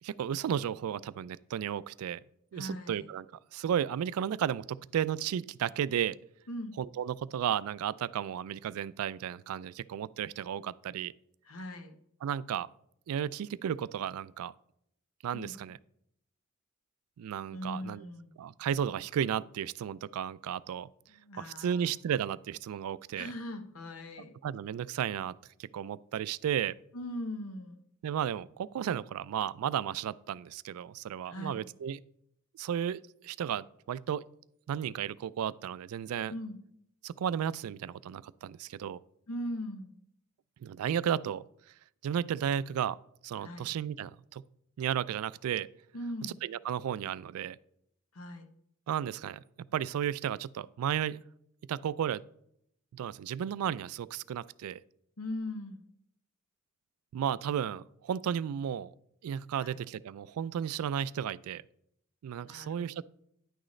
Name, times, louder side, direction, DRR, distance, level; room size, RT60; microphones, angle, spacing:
voice 1, 0.0-2.2 2.5-3.3 3.5-6.2 6.8-11.1 12.2-12.7 13.1-14.5 15.2-15.8 17.2-18.0 18.4-20.9 21.4-23.3 24.4-26.7 28.0-32.0 32.6-34.2 34.7-36.3 37.0-39.0 40.6-41.4 42.0-43.0 43.2-44.4 44.8-45.7 46.2-47.6 48.9-49.4 49.7-51.2 51.7-52.2 52.9-54.8 57.1-58.9 59.2-61.6 62.2-63.0, right 9 dB, 85° right, 0.3 m, -33 dB
voice 2, 2.5-3.1 6.5-6.8 11.5-12.0 15.3-15.5 17.5-18.3 21.1-21.9 23.2-24.3 26.9-27.8 31.3-31.6 36.3-36.6 39.3-39.9 43.4-43.7 45.9-46.4 48.1-48.5 55.2-55.8 59.6-59.8 62.4-63.0, left 1 dB, 75° left, 1.0 m, -40 dB
9.9 x 6.3 x 3.2 m
head